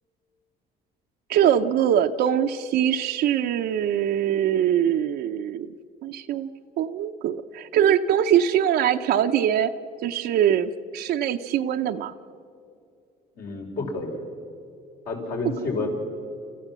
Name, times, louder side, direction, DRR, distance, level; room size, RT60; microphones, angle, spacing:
voice 1, 1.3-5.7 6.0-6.5 6.8-9.7 10.0-12.1, right 9 dB, 70° right, 5 dB, 0.8 m, -22 dB
voice 2, 13.3-14.2 15.1-15.9, left 3 dB, 65° left, 0 dB, 5.1 m, -30 dB
30.0 x 14.0 x 7.5 m, 2.5 s
cardioid pair, 110°, 17 cm